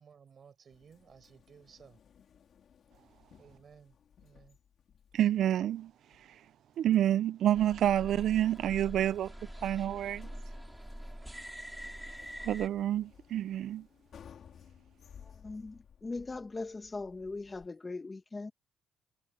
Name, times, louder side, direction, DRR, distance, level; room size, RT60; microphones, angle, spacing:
voice 1, 0.0-2.0 3.4-4.0 4.2-4.6, right 7 dB, 50° right, 7.3 m, -57 dB
sound 1, 0.7-17.7, left 8 dB, 60° left, 4.1 m, -59 dB
voice 2, 5.1-5.9 6.8-9.3 9.6-10.3 12.4-13.9, right 11 dB, 70° right, 0.4 m, -28 dB
sound 2, 7.5-12.7, right 1 dB, 5° right, 4.0 m, -44 dB
voice 3, 15.2-18.5, left 3 dB, 25° left, 1.6 m, -40 dB
cardioid pair, 90°, 0 cm